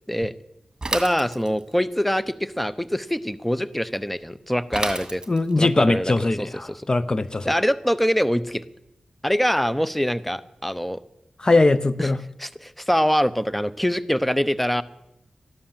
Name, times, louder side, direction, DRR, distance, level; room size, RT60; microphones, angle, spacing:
Bicycle / Mechanisms, 0.8-1.8 4.7-5.6, right 2 dB, 35° right, 2.3 m, -30 dB
voice 1, 0.9-5.2 5.6-6.1 6.4-6.8 7.4-8.6 9.2-11.0 12.0-12.1 12.4-14.8, equal, 5° left, 16 dB, 0.8 m, -24 dB
voice 2, 5.3-7.5 11.4-12.2, left 2 dB, 40° left, 16 dB, 0.7 m, -21 dB
14.5 x 11.5 x 7.4 m, 0.86 s
cardioid pair, 40°, 2 cm